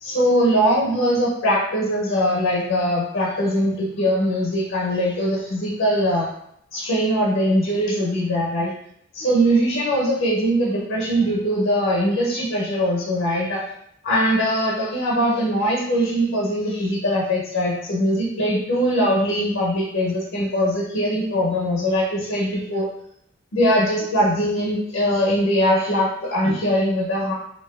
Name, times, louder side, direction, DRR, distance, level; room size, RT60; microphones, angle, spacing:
voice 1, 0.0-6.3 6.7-8.7 9.1-13.6 14.0-22.9 23.5-27.3, equal, 70° left, -4 dB, 0.6 m, -21 dB
2.6 x 2.3 x 2.2 m, 0.72 s
head